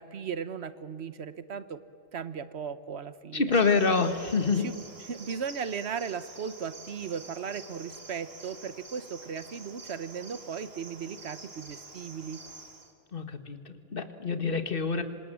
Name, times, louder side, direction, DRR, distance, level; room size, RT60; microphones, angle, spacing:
voice 1, 0.0-1.8 2.1-3.6 4.6-4.8 5.1-12.4, right 6 dB, 90° right, 13 dB, 1.3 m, -37 dB
voice 2, 3.3-4.7 13.1-15.0, left 4 dB, 60° left, 9 dB, 1.8 m, -26 dB
Cricket, 3.5-12.9, right 3 dB, 70° right, 2.4 m, -48 dB
26.5 x 26.0 x 7.6 m, 2.4 s
omnidirectional pair, 1.1 m